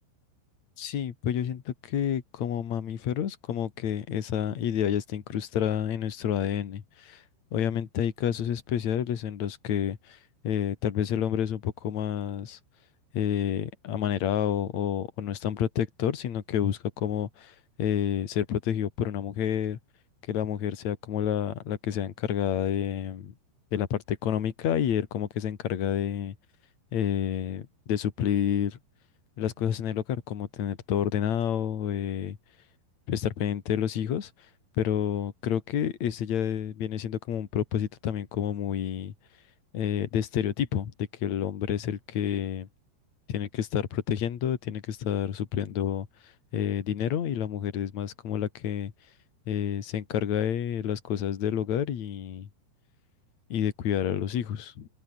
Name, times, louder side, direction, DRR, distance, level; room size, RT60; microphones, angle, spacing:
voice 1, 0.8-7.2 7.5-10.2 10.4-12.6 13.1-19.8 20.3-23.3 23.7-26.3 26.9-28.8 29.4-32.4 33.1-34.3 34.8-39.1 39.7-40.9 41.2-42.7 43.3-46.1 46.5-48.9 49.5-52.5 53.5-54.9, left 9 dB, 50° left, 2.7 m, -29 dB
open air
omnidirectional pair, 5.2 m